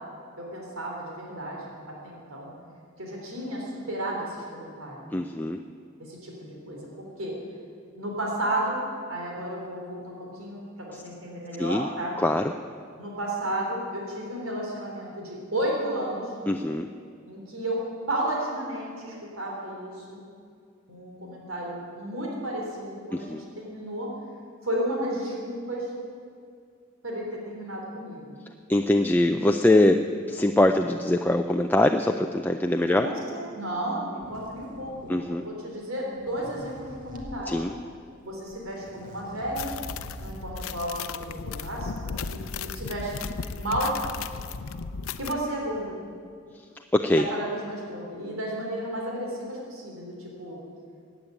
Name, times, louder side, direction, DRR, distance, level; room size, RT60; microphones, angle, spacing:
voice 1, 0.4-1.6 2.0-2.5 3.0-5.0 6.0-7.4 8.0-12.2 13.0-16.3 17.3-20.2 20.9-24.1 24.6-25.9 27.0-28.3 32.9-37.6 38.2-39.7 40.2-43.2 43.6-44.0 45.2-46.0 47.2-50.6, right 1 dB, 85° right, -2 dB, 3.6 m, -33 dB
voice 2, 5.1-5.6 11.6-11.9 12.2-12.4 16.5-16.9 23.1-23.4 28.7-30.0 30.3-33.1 35.1-35.4 37.5-37.7 46.9-47.3, left 1 dB, 10° left, 5 dB, 0.4 m, -22 dB
sound 1, 34.2-35.4 36.0-37.4 38.2-38.3 38.5-40.6, equal, 40° right, 2.1 m, -45 dB
sound 2, 39.6-45.3, left 5 dB, 85° left, 0.6 m, -35 dB
15.5 x 9.0 x 9.4 m, 2.3 s
head